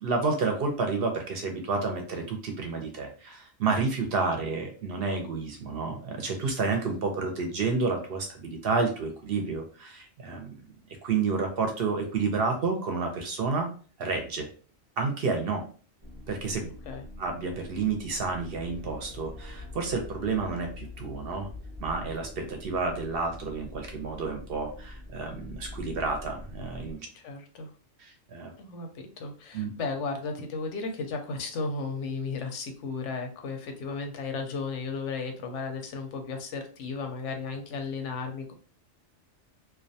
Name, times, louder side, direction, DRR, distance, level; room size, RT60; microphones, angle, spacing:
voice 1, 0.0-10.5 11.0-13.7 14.0-14.5 15.0-15.6 16.3-16.6 17.2-21.5 21.8-27.0 28.0-28.5 29.5-29.7, right 4 dB, 65° right, 3 dB, 0.7 m, -30 dB
sound 1, 16.0-26.9, left 2 dB, 20° right, 0.3 m, -44 dB
voice 2, 16.6-17.0 27.1-27.7 28.6-38.5, left 4 dB, 80° left, 4 dB, 0.9 m, -34 dB
2.4 x 2.1 x 2.6 m, 0.40 s
omnidirectional pair, 1.2 m